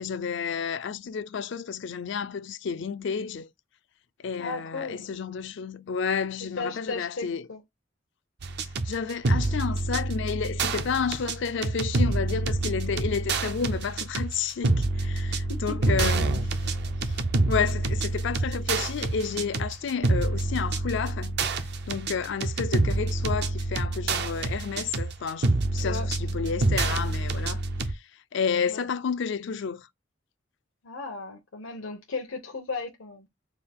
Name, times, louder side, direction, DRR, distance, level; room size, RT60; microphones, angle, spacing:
voice 1, 0.0-3.5 4.2-7.5 8.8-16.5 17.0-17.2 17.5-21.4 21.9-28.0 28.3-29.9, left 6 dB, 65° left, 0.4 m, -31 dB
voice 2, 4.3-5.0 6.6-7.6 15.2-15.8 25.8-26.1 28.7-28.8 30.8-33.3, left 3 dB, 85° left, 0.8 m, -35 dB
sound 1, 8.4-27.9, right 2 dB, 55° right, 0.5 m, -27 dB
3.6 x 2.4 x 3.4 m
head